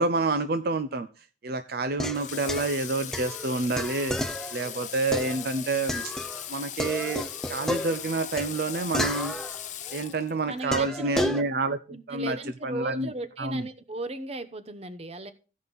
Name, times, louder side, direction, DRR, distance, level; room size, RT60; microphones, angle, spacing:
voice 1, 0.0-4.2 4.5-6.1 6.5-9.4 9.9-11.8 12.1-12.4 12.6-13.1 13.4-13.6, right 3 dB, 60° right, 0.5 m, -28 dB
sound 1, 1.9-6.5 6.8-10.1 10.7-11.4, left 1 dB, 5° left, 0.6 m, -33 dB
Water / Water tap faucet, 2.1-10.7, left 10 dB, 45° left, 0.8 m, -39 dB
voice 2, 10.5-11.3 11.9-15.3, right 1 dB, 35° right, 0.9 m, -36 dB
15.0 x 5.2 x 4.0 m
head